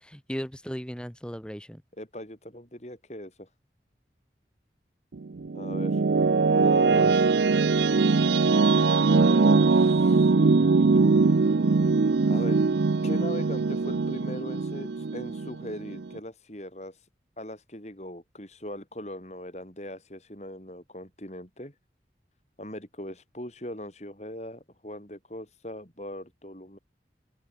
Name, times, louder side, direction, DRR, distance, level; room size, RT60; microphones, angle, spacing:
voice 1, 0.0-1.8 6.9-7.2 10.5-11.3, equal, 5° left, 7.8 m, -38 dB
voice 2, 2.0-3.5 5.5-6.0 6.5-7.4 9.1-10.3 12.3-12.6 13.0-17.0 17.4-21.7 22.6-26.8, left 1 dB, 40° left, 5.5 m, -40 dB
sound 1, 5.1-16.2, right 4 dB, 80° right, 0.5 m, -22 dB
open air
head